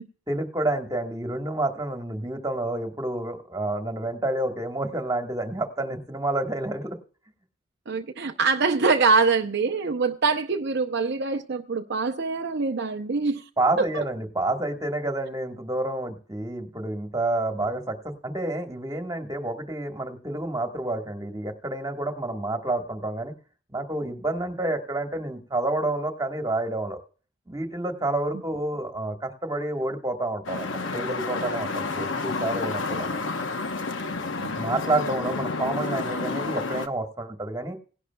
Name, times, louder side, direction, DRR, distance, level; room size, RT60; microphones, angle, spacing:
voice 1, 0.3-7.0 13.6-23.3 23.7-27.0 27.5-33.3 34.5-37.8, right 2 dB, 15° right, 1.4 m, -29 dB
voice 2, 7.9-13.4 13.8-14.0 34.4-34.5, right 4 dB, 55° right, 0.6 m, -24 dB
sound 1, 30.4-36.9, left 3 dB, 60° left, 0.9 m, -30 dB
18.0 x 11.0 x 2.3 m
head